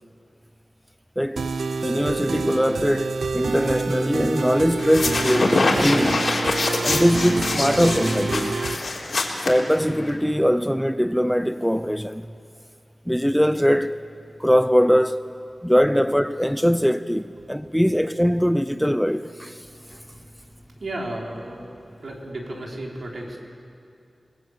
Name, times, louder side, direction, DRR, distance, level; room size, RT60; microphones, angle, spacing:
sound 1, 1.4-8.8, right 4 dB, 85° right, 0.9 m, -27 dB
voice 1, 1.8-6.2 6.8-8.6 9.4-12.3 13.1-14.0 14.4-15.3 15.6-19.7, equal, ahead, 0.6 m, -21 dB
sound 2, 4.8-10.1, left 2 dB, 65° left, 3.9 m, -24 dB
voice 2, 19.7-23.4, right 1 dB, 65° right, 4.9 m, -35 dB
29.5 x 20.0 x 8.5 m
wide cardioid pair, 75°, 0 cm